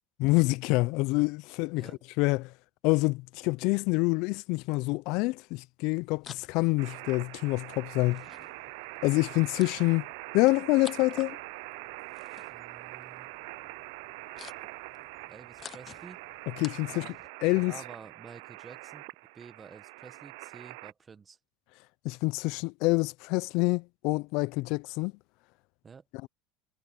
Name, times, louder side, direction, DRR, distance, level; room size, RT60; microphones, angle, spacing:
voice 1, 0.2-1.9 2.2-2.5 2.8-8.2 9.0-10.1 10.3-11.3 16.6-17.1 17.4-17.7 22.0-25.1, left 24 dB, 65° left, 0.3 m, -26 dB
sound 1, 5.8-17.3, left 8 dB, 35° left, 0.7 m, -52 dB
sound 2, 6.8-20.9, right 26 dB, 75° right, 0.3 m, -44 dB
voice 2, 12.5-13.3 15.3-16.2 16.9-19.0 19.3-21.4 25.8-26.0, right 5 dB, 25° right, 1.2 m, -50 dB
supercardioid pair, 120°, 0 cm